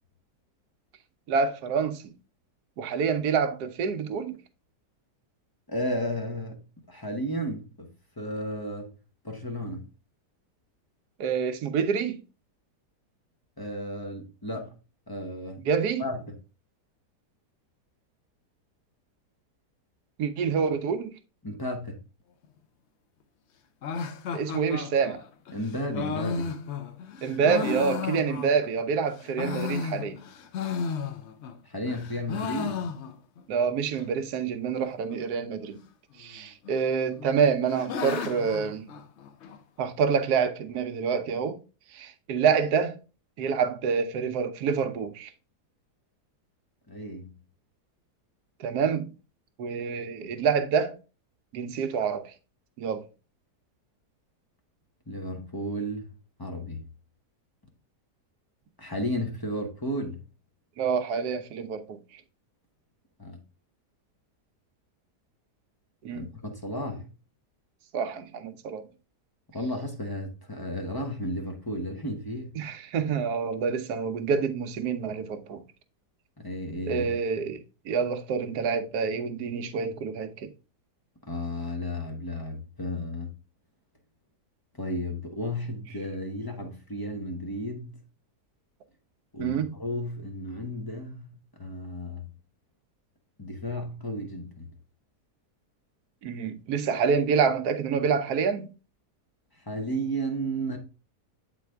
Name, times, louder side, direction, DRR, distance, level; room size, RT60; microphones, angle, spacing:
voice 1, 1.3-2.1 2.8-4.4 11.2-12.2 15.6-16.0 20.2-21.1 24.3-25.2 27.2-30.2 33.5-35.8 36.2-38.9 39.8-41.6 41.9-43.0 43.4-45.3 48.6-49.1 49.6-51.0 51.5-52.3 52.8-53.0 60.8-62.2 66.0-66.3 67.9-68.8 72.6-75.6 76.9-80.5 89.4-89.7 96.2-98.7, right 6 dB, 75° right, 1.2 m, -27 dB
voice 2, 5.7-6.6 6.9-8.9 9.2-9.9 13.6-14.8 15.1-15.6 16.0-16.3 21.4-22.0 25.5-26.5 31.6-32.9 46.9-47.3 55.1-56.1 56.4-56.8 58.8-60.2 63.2-63.4 66.1-67.1 69.5-72.5 76.4-77.1 81.2-83.3 84.7-88.0 89.3-91.3 91.6-92.3 93.4-94.7 99.7-100.8, equal, 20° left, 0.6 m, -33 dB
sound 1, 23.8-28.8 29.2-31.6 31.9-33.4 33.7-33.8 34.0-34.1 34.7-35.2 36.2-36.8 37.2-39.6, left 5 dB, 65° left, 0.7 m, -34 dB
7.7 x 4.1 x 3.4 m
omnidirectional pair, 1.8 m